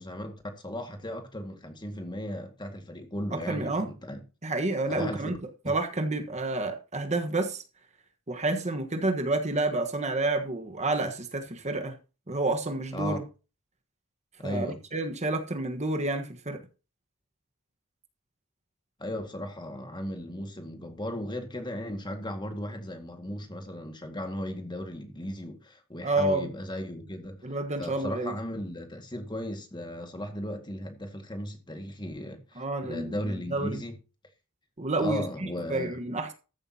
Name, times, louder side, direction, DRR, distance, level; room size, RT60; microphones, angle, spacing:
voice 1, 0.0-4.2 4.9-5.3 12.9-13.2 14.4-14.8 19.0-27.4 27.8-34.0 35.0-36.0, equal, 20° left, 2.0 m, -36 dB
voice 2, 3.3-3.9 4.4-5.4 5.6-7.6 8.3-12.0 12.3-13.2 14.4-16.6 26.0-26.5 27.4-28.3 32.6-33.8 34.8-36.3, right 2 dB, 30° right, 1.4 m, -29 dB
14.0 x 12.0 x 2.9 m
head